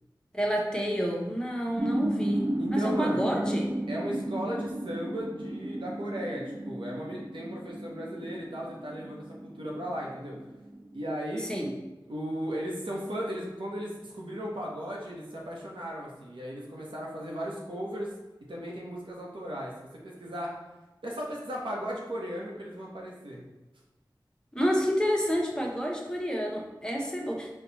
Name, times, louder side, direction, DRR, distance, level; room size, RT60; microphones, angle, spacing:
voice 1, 0.3-3.7 11.4-11.7 24.5-27.5, equal, 10° left, -1 dB, 0.8 m, -29 dB
sound 1, 1.8-11.0, right 1 dB, 30° right, 0.4 m, -33 dB
voice 2, 2.6-3.2 3.9-10.4 10.9-11.5 12.1-18.1 18.5-19.7 20.0-20.6 21.0-23.4, equal, 90° right, -3 dB, 0.9 m, -36 dB
4.4 x 2.3 x 4.0 m, 1.1 s
wide cardioid pair, 50°, 8 cm